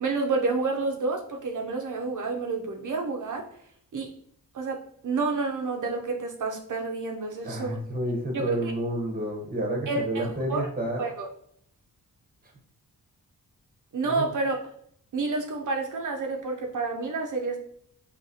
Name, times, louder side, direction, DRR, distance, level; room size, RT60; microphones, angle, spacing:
voice 1, 0.0-3.5 3.9-4.1 4.5-7.8 8.3-8.5 9.9-10.6 11.0-11.3 13.9-14.6 15.1-17.6, right 3 dB, 55° right, 2 dB, 0.6 m, -29 dB
voice 2, 7.4-11.1 14.0-14.2, right 1 dB, 25° right, 0 dB, 0.9 m, -30 dB
5.5 x 2.9 x 2.7 m, 0.66 s
wide cardioid pair, 175°, 36 cm